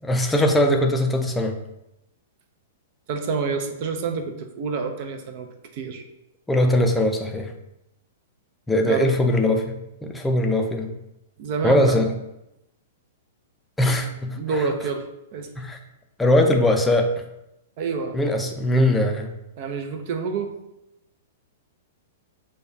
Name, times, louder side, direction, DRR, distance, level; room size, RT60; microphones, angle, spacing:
voice 1, 0.0-1.6 6.5-7.5 8.7-10.9 11.6-12.0 13.8-14.7 15.6-15.8 16.2-17.1 18.1-19.3, left 1 dB, 5° left, 3 dB, 0.5 m, -21 dB
voice 2, 3.1-5.5 5.7-6.0 8.8-9.1 11.4-12.0 14.3-15.1 15.3-15.5 17.8-18.2 19.6-20.5, right 5 dB, 50° right, 5 dB, 0.6 m, -27 dB
6.4 x 2.3 x 2.7 m, 0.88 s
hypercardioid pair, 135°, 0 cm